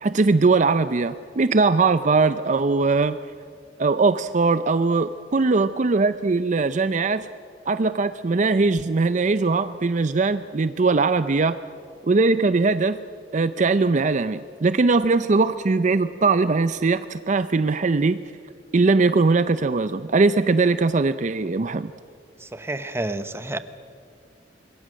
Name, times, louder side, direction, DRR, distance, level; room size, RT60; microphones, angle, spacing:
voice 1, 0.0-3.2 3.8-7.3 7.7-11.6 12.1-13.0 13.3-18.2 18.7-21.9, right 3 dB, 45° right, 12 dB, 0.5 m, -20 dB
voice 2, 22.4-23.6, right 2 dB, 15° right, 11 dB, 0.9 m, -29 dB
26.5 x 22.0 x 6.3 m, 2.3 s
head